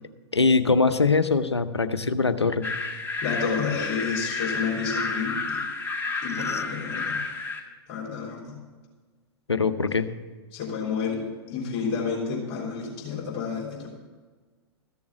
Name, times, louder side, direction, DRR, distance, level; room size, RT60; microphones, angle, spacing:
voice 1, 0.3-2.7 9.5-10.1, left 4 dB, 90° left, 12 dB, 0.7 m, -22 dB
sound 1, 2.6-7.6, left 4 dB, 15° left, 1.7 m, -30 dB
voice 2, 3.2-5.6 6.2-7.2 7.9-8.6 10.5-13.9, left 5 dB, 40° left, -2 dB, 3.6 m, -30 dB
14.5 x 7.1 x 6.2 m, 1.4 s
figure-of-eight pair, 100°, 14 cm